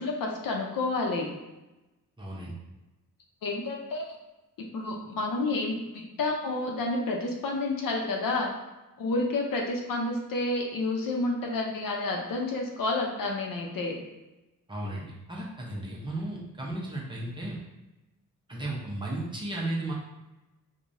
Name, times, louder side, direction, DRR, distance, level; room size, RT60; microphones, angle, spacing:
voice 1, 0.0-1.3 3.4-4.1 4.7-8.5 9.0-14.0, left 2 dB, 70° left, 0 dB, 0.7 m, -30 dB
voice 2, 2.2-2.5 14.7-17.6 18.5-19.9, right 1 dB, 15° right, -4 dB, 0.8 m, -34 dB
4.7 x 2.3 x 2.6 m, 1.0 s
wide cardioid pair, 140°, 35 cm